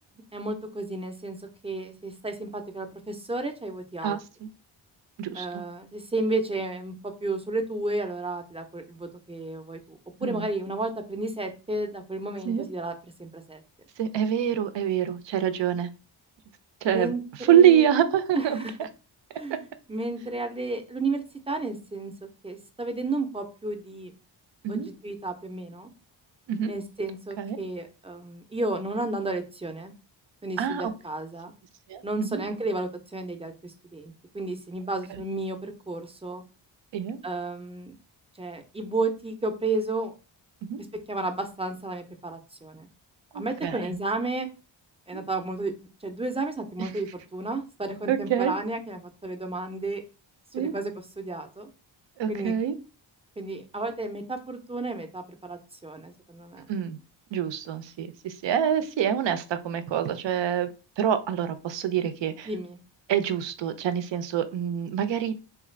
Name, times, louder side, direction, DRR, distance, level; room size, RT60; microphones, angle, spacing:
voice 1, 0.3-4.2 5.3-12.9 13.2-13.6 16.9-17.2 17.5-17.9 18.3-18.7 19.3-22.1 22.4-24.1 24.7-25.9 26.6-29.9 30.4-31.5 32.0-36.4 37.2-37.9 38.4-40.1 40.8-42.9 43.3-44.5 45.1-45.7 46.0-50.0 50.6-50.9 51.2-51.7 52.3-52.5 53.4-56.7 62.5-62.8, right 2 dB, 15° right, 6 dB, 0.5 m, -32 dB
voice 2, 4.0-4.5 5.2-5.6 10.2-10.5 12.4-12.6 14.0-15.9 16.8-17.1 17.4-18.6 24.6-24.9 26.5-26.7 27.4-27.6 30.6-30.9 31.9-32.4 35.1-35.2 36.9-37.2 40.6-40.8 43.3-43.8 46.8-46.9 48.1-48.5 50.5-50.7 52.2-52.7 56.7-57.0 57.3-62.5 63.1-65.4, right 9 dB, 65° right, 11 dB, 0.6 m, -25 dB
3.2 x 2.4 x 3.1 m, 0.33 s
cardioid pair, 70°, 48 cm